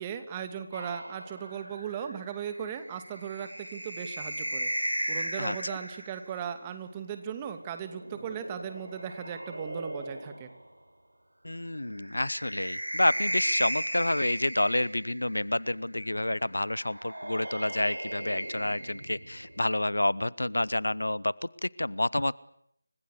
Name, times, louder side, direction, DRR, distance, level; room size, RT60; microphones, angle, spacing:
voice 1, 0.0-10.5, right 8 dB, 20° right, 8 dB, 2.6 m, -38 dB
sound 1, 0.7-6.3 7.6-10.6 12.0-15.4 16.7-19.6, right 1 dB, 85° right, 4.9 m, -36 dB
voice 2, 11.4-22.3, left 1 dB, 75° left, 22 dB, 1.0 m, -29 dB
29.5 x 25.0 x 6.7 m, 0.70 s
figure-of-eight pair, 160°, 0 cm